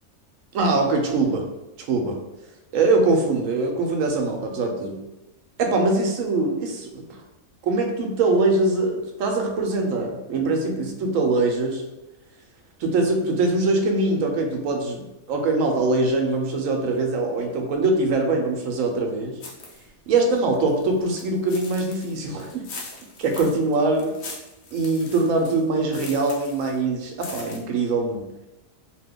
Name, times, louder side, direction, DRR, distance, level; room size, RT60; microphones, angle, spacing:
voice 1, 0.5-1.4 1.9-2.2 2.7-5.0 5.6-7.0 7.6-11.8 12.8-15.0 15.3-19.3 20.1-22.7 23.2-24.1 24.7-28.3, right 3 dB, 75° right, 2 dB, 1.0 m, -22 dB
sound 1, 19.4-19.9 20.2-26.8 27.1-27.6, left 3 dB, 75° left, 1.1 m, -41 dB
2.8 x 2.2 x 3.5 m, 0.97 s
omnidirectional pair, 1.5 m